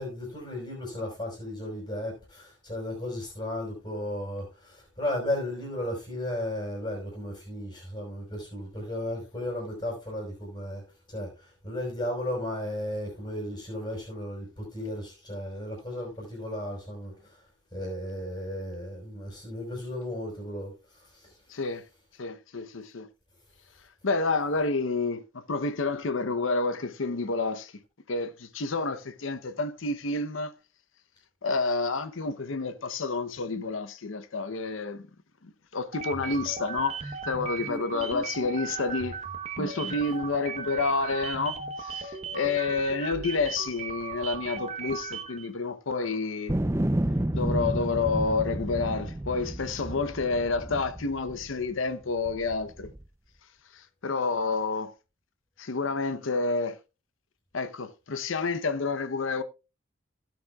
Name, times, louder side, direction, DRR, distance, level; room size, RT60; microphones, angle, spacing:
voice 1, 0.0-17.4 17.7-21.3, left 1 dB, 25° left, 5.0 m, -35 dB
voice 2, 21.5-21.8 22.2-23.1 24.0-27.7 28.1-30.5 31.4-35.0 35.4-39.2 39.6-46.6 47.3-52.9 54.0-54.9 55.6-56.8 57.5-59.4, left 3 dB, 85° left, 0.8 m, -29 dB
sound 1, 35.9-45.5, right 5 dB, 35° right, 1.0 m, -37 dB
sound 2, 46.5-51.7 52.3-53.0, right 1 dB, 15° right, 0.5 m, -30 dB
16.0 x 9.4 x 2.3 m
head